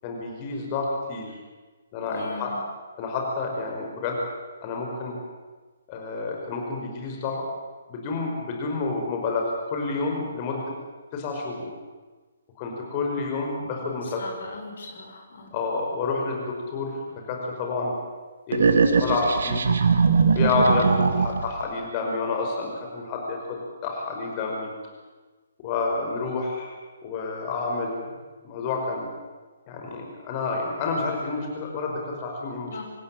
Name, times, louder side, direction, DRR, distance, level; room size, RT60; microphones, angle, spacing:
voice 1, 0.0-1.4 1.9-2.5 3.0-4.2 4.6-5.1 5.9-7.4 7.9-10.7 11.1-11.7 12.6-14.2 15.5-17.9 18.5-19.7 20.3-24.7 25.6-26.7 27.0-28.1 28.4-29.1 29.7-32.8, left 3 dB, 30° left, 1 dB, 5.4 m, -29 dB
voice 2, 2.1-2.6 14.0-15.5 32.7-32.8, left 3 dB, 60° left, 3 dB, 5.8 m, -39 dB
sound 1, 18.5-21.6, right 5 dB, 60° right, 2.3 m, -21 dB
27.0 x 15.5 x 8.8 m, 1.3 s
figure-of-eight pair, 135°, 0 cm